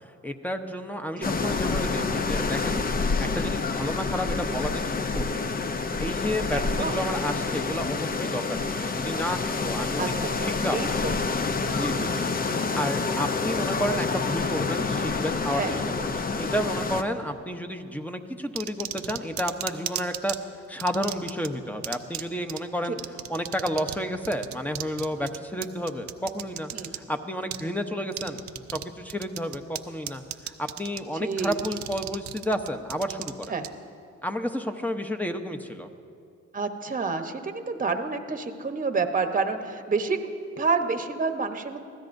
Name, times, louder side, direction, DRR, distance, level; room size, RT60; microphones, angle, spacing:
voice 1, 0.2-2.8 3.2-5.5 6.0-11.0 11.7-12.3 12.7-20.4 20.7-28.4 28.7-33.3 34.2-35.9, equal, 5° left, 6 dB, 0.9 m, -31 dB
sound 1, 1.2-17.0, left 4 dB, 30° left, 0.7 m, -28 dB
voice 2, 6.5-7.0 10.0-10.3 10.6-11.1 11.7-12.2 15.6-15.7 25.2-25.3 26.7-26.9 31.2-31.5 33.5-33.7 36.5-40.3 40.6-41.8, right 4 dB, 25° right, 7 dB, 1.0 m, -29 dB
sound 2, 18.6-20.4 20.8-21.5 21.8-22.2 22.5-22.6 23.0-24.0 24.2-27.0 27.5-27.6 28.1-28.8 29.1-29.8 30.1-31.0 31.3-33.7, right 12 dB, 70° right, 0.6 m, -34 dB
24.0 x 15.5 x 2.7 m, 2.4 s
cardioid pair, 90°, 30 cm